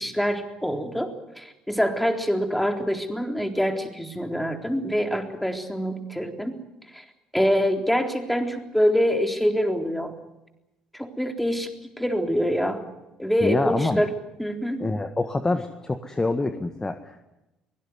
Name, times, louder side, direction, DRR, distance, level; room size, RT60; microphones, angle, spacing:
voice 1, 0.0-6.6 6.9-7.0 7.3-10.1 10.9-11.7 12.0-12.8 13.2-14.1 14.4-14.8, equal, 5° left, 5 dB, 3.7 m, -25 dB
voice 2, 13.4-14.0 14.8-17.2, left 2 dB, 20° left, 8 dB, 1.7 m, -26 dB
23.5 x 18.0 x 9.7 m, 0.96 s
hypercardioid pair, 55°, 3 cm